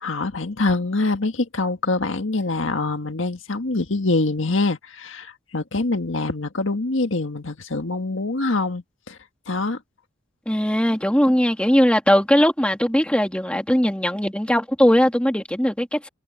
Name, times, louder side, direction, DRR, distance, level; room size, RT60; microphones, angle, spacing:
voice 1, 0.0-9.2 9.5-9.8, left 3 dB, 70° left, 1.7 m, -24 dB
voice 2, 10.5-16.1, equal, 5° left, 2.2 m, -19 dB
head